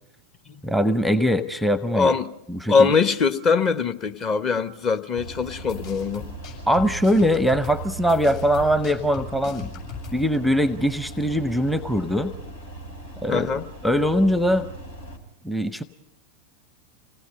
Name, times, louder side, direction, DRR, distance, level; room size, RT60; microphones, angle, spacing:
voice 1, 0.6-2.1 2.5-2.7 6.7-9.7 10.1-12.3 13.2-13.5 13.8-14.7 15.4-15.8, equal, ahead, 0.7 m, -21 dB
voice 2, 1.9-2.3 2.7-6.3 13.3-13.6, left 5 dB, 30° left, 1.0 m, -22 dB
sound 1, 5.2-15.2, right 2 dB, 80° left, 3.8 m, -39 dB
sound 2, 5.7-10.3, left 8 dB, 50° left, 7.2 m, -39 dB
27.0 x 18.0 x 5.4 m
figure-of-eight pair, 90°, 0 cm